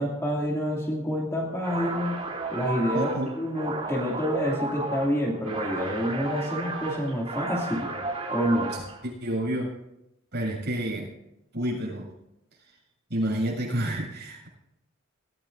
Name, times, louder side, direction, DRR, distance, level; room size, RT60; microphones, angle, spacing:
voice 1, 0.0-2.2 2.5-7.9 8.3-8.7, equal, 15° left, -3 dB, 2.6 m, -28 dB
sound 1, 1.6-9.0, right 3 dB, 35° right, 3.2 m, -34 dB
voice 2, 2.9-3.3 8.7-9.7 10.3-11.1 11.5-12.1 13.1-14.5, right 1 dB, 55° right, -2 dB, 7.3 m, -29 dB
21.5 x 16.0 x 2.7 m, 0.86 s
head